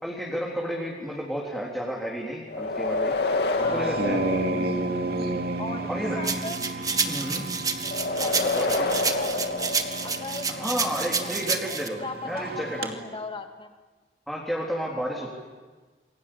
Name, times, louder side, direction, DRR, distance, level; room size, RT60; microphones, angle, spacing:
voice 1, 0.0-3.2 3.7-4.2 5.0-5.2 5.9-6.2 7.1-7.5 7.9-8.0 8.5-8.9 10.5-13.0 14.3-15.3, equal, ahead, -4 dB, 3.7 m, -31 dB
sound 1, 2.5-5.2 7.8-10.6, left 3 dB, 65° left, 2.4 m, -28 dB
voice 2, 3.6-4.5 5.6-6.6 8.2-9.7 10.0-13.7, left 2 dB, 30° left, 4 dB, 2.4 m, -38 dB
sound 2, 3.6-12.9, right 2 dB, 60° right, 2.6 m, -32 dB
sound 3, 6.2-11.9, right 5 dB, 20° right, 1.6 m, -29 dB
28.0 x 22.5 x 8.7 m, 1.4 s
head